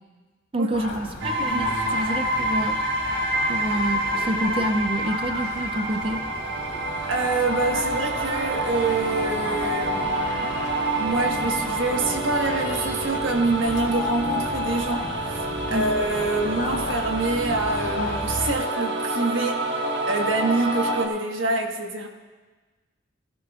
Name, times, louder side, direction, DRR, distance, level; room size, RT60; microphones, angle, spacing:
voice 1, 0.5-3.2 3.5-6.3 15.7-15.9, right 1 dB, 30° right, 6 dB, 0.4 m, -28 dB
sound 1, 0.7-18.5, left 3 dB, 70° left, 2.6 m, -35 dB
sound 2, 1.2-21.1, right 1 dB, 65° right, 1.4 m, -28 dB
voice 2, 7.1-10.5 11.0-19.7 20.1-22.1, right 3 dB, 80° right, 3 dB, 1.3 m, -26 dB
17.0 x 15.5 x 2.4 m, 1.3 s
head